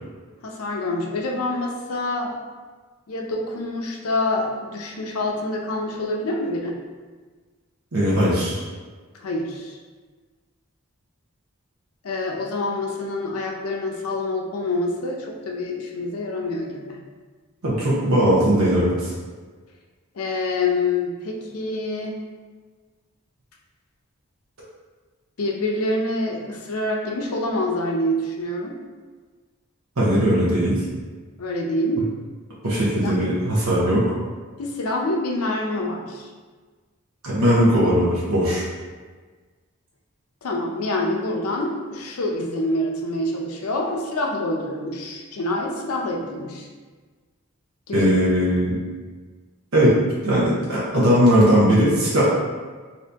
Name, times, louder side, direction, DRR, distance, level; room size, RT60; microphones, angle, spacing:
voice 1, 0.4-2.3 3.1-6.8 9.2-9.8 12.0-17.0 20.1-22.2 25.4-28.8 31.4-32.1 32.6-33.3 34.6-36.3 40.4-46.7 47.9-48.1, left 2 dB, 90° left, 1 dB, 0.5 m, -26 dB
voice 2, 7.9-8.6 17.6-19.1 30.0-30.8 32.6-34.0 37.2-38.7 47.9-48.8 49.7-49.9 50.2-52.2, equal, 80° right, -7 dB, 0.8 m, -19 dB
2.8 x 2.6 x 3.4 m, 1.4 s
head